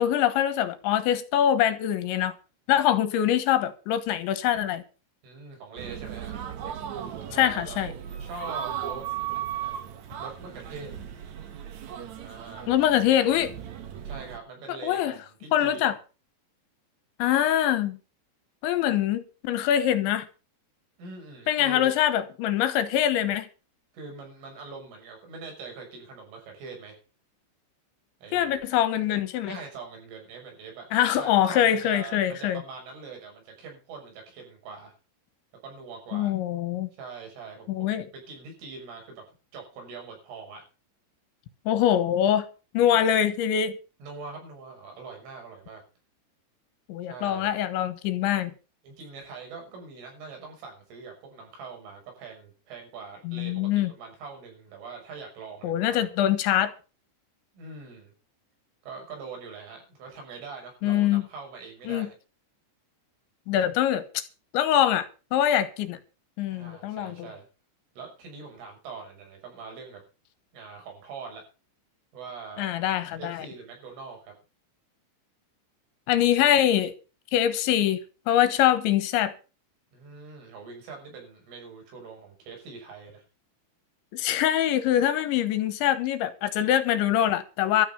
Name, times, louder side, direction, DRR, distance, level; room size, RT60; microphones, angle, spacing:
voice 1, 0.0-2.3 2.7-4.8 7.4-7.9 12.7-13.5 14.7-15.1 15.5-15.9 17.2-18.0 18.6-20.3 21.5-23.5 28.3-29.6 30.9-32.6 36.1-36.9 37.7-38.0 41.7-42.5 42.7-43.8 46.9-48.5 53.2-53.9 55.6-56.7 60.8-61.2 61.9-62.1 63.5-64.2 64.5-65.1 65.3-66.0 66.4-67.3 72.6-73.5 76.1-76.9 77.3-78.0 78.3-79.3 84.1-87.9, left 11 dB, 75° left, 3.5 m, -24 dB
voice 2, 5.2-6.3 7.3-9.1 10.2-10.9 12.2-12.8 14.0-16.0 21.0-21.9 23.9-27.0 28.2-28.6 29.4-30.9 31.2-34.9 35.6-36.3 37.0-39.2 39.5-40.6 44.0-45.8 47.0-47.6 48.8-56.1 57.5-58.1 58.8-62.1 66.5-67.5 68.0-70.0 70.5-71.4 72.1-72.6 73.2-74.3 79.9-83.2, right 4 dB, 90° right, 8.7 m, -43 dB
sound 1, 5.8-14.4, right 10 dB, 65° right, 1.8 m, -37 dB
13.0 x 9.3 x 6.9 m
omnidirectional pair, 5.5 m